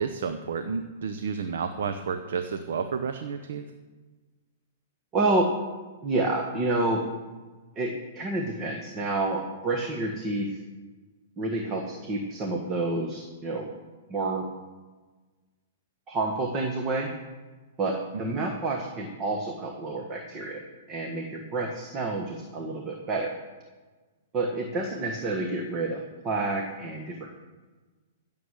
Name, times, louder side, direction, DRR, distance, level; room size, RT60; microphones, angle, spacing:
voice 1, 0.0-3.7 18.1-18.4, right 6 dB, 70° right, 8 dB, 0.9 m, -31 dB
voice 2, 5.1-5.5 6.0-7.0 7.7-10.6 11.4-13.7 14.1-14.5 16.1-17.1 17.8-20.6 20.9-23.3 24.3-27.4, right 2 dB, 25° right, 2 dB, 1.6 m, -29 dB
15.5 x 7.2 x 6.5 m, 1.3 s
hypercardioid pair, 140°, 0 cm